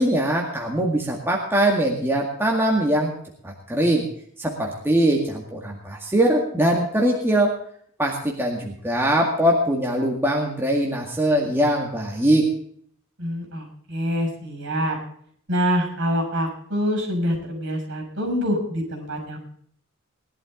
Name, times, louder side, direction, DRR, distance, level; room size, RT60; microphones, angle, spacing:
voice 1, 0.0-3.2 3.4-4.1 4.4-7.6 8.0-12.5, right 1 dB, 10° right, -1 dB, 2.0 m, -22 dB
voice 2, 13.2-15.0 15.5-19.4, equal, 55° right, 3 dB, 6.5 m, -25 dB
20.0 x 11.5 x 3.8 m, 0.62 s
head